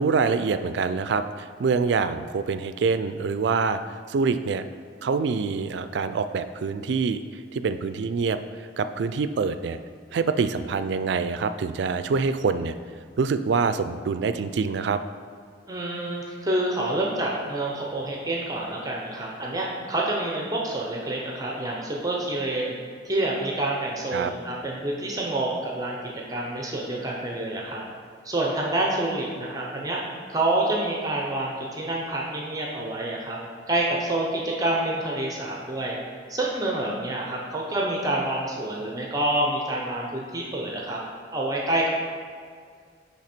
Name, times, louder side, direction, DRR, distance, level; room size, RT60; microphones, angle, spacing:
voice 1, 0.0-4.6 5.0-9.8 10.1-12.7 13.2-15.0 24.1-24.3, right 5 dB, 65° right, 10 dB, 0.3 m, -25 dB
voice 2, 15.7-22.8 23.0-26.0 26.3-27.8 28.2-30.0 30.3-33.4 33.7-36.0 36.3-41.0 41.3-41.9, right 1 dB, 20° right, -2 dB, 0.7 m, -27 dB
9.9 x 3.4 x 4.4 m, 2.1 s
head